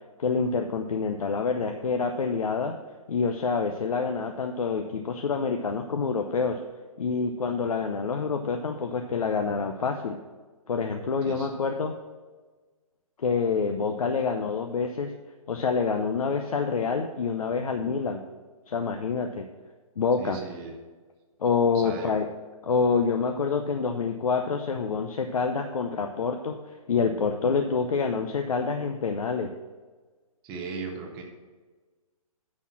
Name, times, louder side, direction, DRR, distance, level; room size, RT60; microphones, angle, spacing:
voice 1, 0.2-2.7 3.1-6.6 7.0-10.2 10.7-12.0 13.2-15.1 15.5-18.2 18.7-19.5 20.0-20.4 21.4-22.3 22.6-29.5, left 5 dB, 75° left, 5 dB, 0.7 m, -27 dB
voice 2, 20.2-20.7 21.7-22.2 30.4-31.2, right 4 dB, 10° right, -1 dB, 0.6 m, -37 dB
9.8 x 4.3 x 6.0 m, 1.3 s
hypercardioid pair, 170°, 19 cm